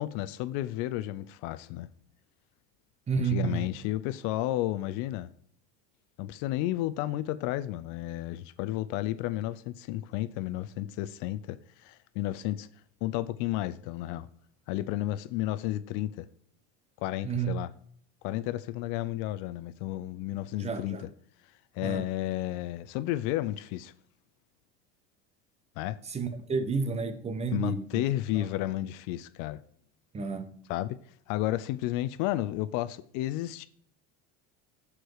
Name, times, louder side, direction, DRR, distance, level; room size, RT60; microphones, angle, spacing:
voice 1, 0.0-1.9 3.2-5.3 6.2-12.7 13.0-14.3 14.7-16.3 17.0-17.7 18.2-21.0 21.7-23.9 25.8-26.0 27.5-29.6 30.7-31.0 31.3-33.7, left 15 dB, 65° left, 0.6 m, -32 dB
voice 2, 3.1-3.6 17.2-17.6 20.6-21.0 21.8-22.1 26.0-28.0 28.3-28.5 30.1-30.6, right 5 dB, 20° right, 1.0 m, -31 dB
14.5 x 4.9 x 4.8 m
cardioid pair, 150°, 32 cm